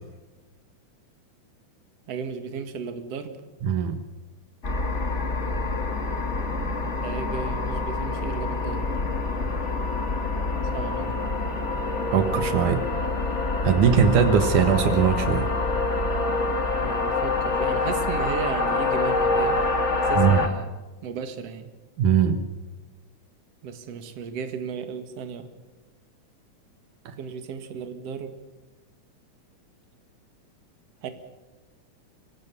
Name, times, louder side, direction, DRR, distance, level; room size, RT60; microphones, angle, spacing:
voice 1, 2.1-3.4 6.7-8.9 10.7-11.2 16.8-19.6 20.1-20.7 21.0-21.7 23.6-25.5 27.2-28.4 31.0-31.1, right 6 dB, 55° right, 8 dB, 2.7 m, -35 dB
voice 2, 3.6-4.0 12.1-12.8 13.6-15.5 20.1-20.5 22.0-22.4 27.1-27.2, right 7 dB, 75° right, 9 dB, 2.8 m, -20 dB
sound 1, 4.6-20.5, left 3 dB, 25° left, 1.9 m, -26 dB
25.5 x 16.5 x 7.1 m, 1.2 s
omnidirectional pair, 3.6 m